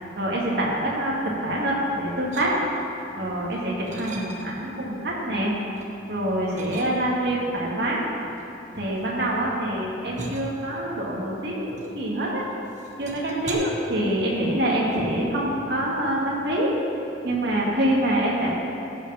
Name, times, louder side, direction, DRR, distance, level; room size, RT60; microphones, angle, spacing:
voice 1, 0.2-2.5 3.1-5.6 6.1-8.0 8.7-12.5 13.0-16.7 17.2-18.6, right 1 dB, 60° right, -4 dB, 2.0 m, -25 dB
sound 1, 2.3-3.0 3.4-4.7 5.2-5.9 6.5-7.4 8.2-12.3 12.6-13.5, right 2 dB, 40° right, 1.0 m, -40 dB
15.0 x 5.7 x 5.6 m, 2.8 s
head